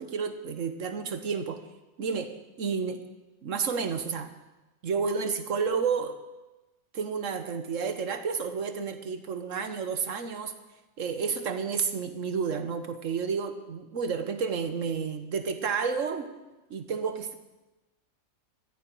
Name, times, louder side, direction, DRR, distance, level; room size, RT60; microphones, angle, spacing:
voice 1, 0.0-1.6 2.0-3.0 3.4-4.3 4.8-6.2 6.9-10.5 11.0-16.3 16.7-17.3, right 5 dB, 65° right, 9 dB, 1.4 m, -31 dB
18.0 x 14.0 x 4.6 m, 1.1 s
omnidirectional pair, 1.5 m